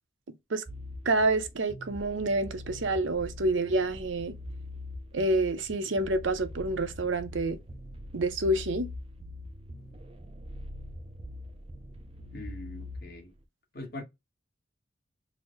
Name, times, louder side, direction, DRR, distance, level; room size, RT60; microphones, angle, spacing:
sound 1, 0.7-13.2, left 1 dB, 30° right, 0.5 m, -43 dB
voice 1, 1.0-4.3 5.1-7.6 8.1-8.9, right 2 dB, 85° right, 0.6 m, -28 dB
voice 2, 12.3-13.3 13.7-14.0, left 1 dB, 55° left, 1.4 m, -42 dB
3.9 x 2.0 x 3.0 m
head